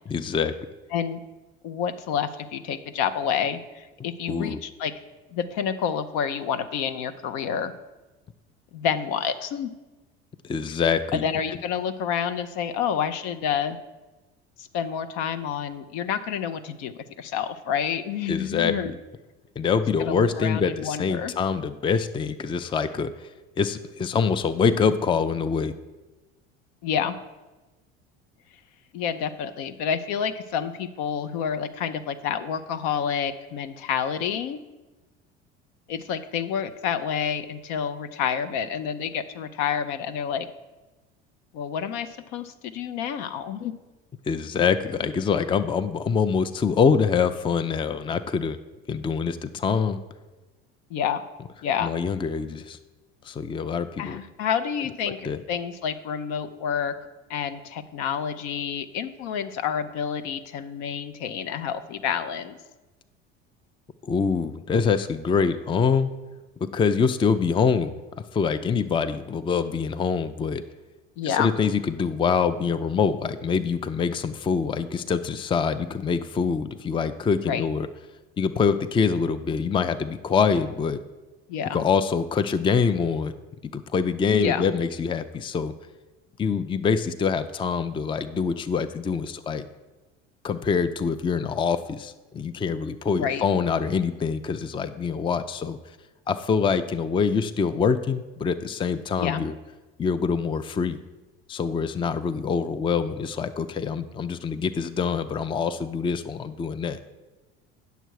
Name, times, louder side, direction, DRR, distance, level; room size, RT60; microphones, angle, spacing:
voice 1, 0.1-0.5 4.3-4.6 10.4-11.2 18.3-19.0 19.6-23.3 23.6-25.7 44.3-48.6 48.9-50.0 51.8-52.8 53.2-54.2 55.2-55.4 64.0-66.1 66.6-68.0 68.3-70.6 71.3-77.9 78.4-81.0 81.7-83.3 83.6-85.7 86.4-89.6 90.4-95.8 96.3-99.5 100.0-101.0 101.5-107.0, left 6 dB, 15° left, 12 dB, 0.4 m, -25 dB
voice 2, 1.6-4.9 5.3-7.7 8.7-9.7 11.1-13.8 14.6-18.9 20.0-21.3 26.8-27.1 28.9-34.6 35.9-40.5 41.5-43.7 50.9-51.2 51.6-51.9 54.0-56.9 57.3-62.6 71.2-71.5 77.4-77.7 81.5-81.8 84.3-84.6 93.1-93.4 99.2-99.4, left 8 dB, 65° left, 10 dB, 0.7 m, -28 dB
8.9 x 6.8 x 4.7 m, 1.2 s
hypercardioid pair, 70°, 32 cm